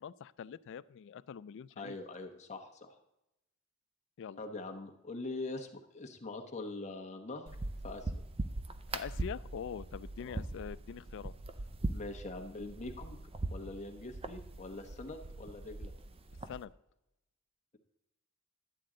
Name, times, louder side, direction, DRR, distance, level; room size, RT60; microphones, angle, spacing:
voice 1, 0.0-2.0 4.2-4.4 8.9-11.3 16.5-16.7, left 7 dB, 60° left, 17 dB, 0.3 m, -44 dB
voice 2, 1.8-2.9 4.4-5.7 5.9-7.6 7.8-8.1 10.2-10.4 11.9-13.2 13.5-15.9, left 2 dB, 35° left, 4 dB, 1.1 m, -43 dB
sound 1, 7.5-16.6, right 2 dB, 25° right, 0.5 m, -41 dB
11.5 x 8.5 x 3.8 m, 0.89 s
head